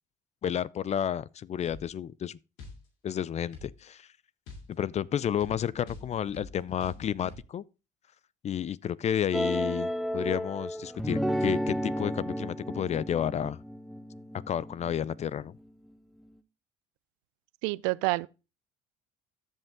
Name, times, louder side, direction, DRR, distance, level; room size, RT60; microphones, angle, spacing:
voice 1, 0.4-2.4 3.0-4.1 4.7-7.6 8.4-13.6 14.5-15.5, left 9 dB, 40° left, 0.5 m, -31 dB
sound 1, 1.7-1.9 2.6-2.8 3.5-3.8 4.5-7.4, left 3 dB, 80° left, 2.6 m, -46 dB
sound 2, 9.3-15.4, equal, ahead, 0.9 m, -32 dB
voice 2, 17.6-18.3, right 24 dB, 80° right, 0.4 m, -28 dB
14.0 x 5.3 x 3.6 m
supercardioid pair, 70°, 18 cm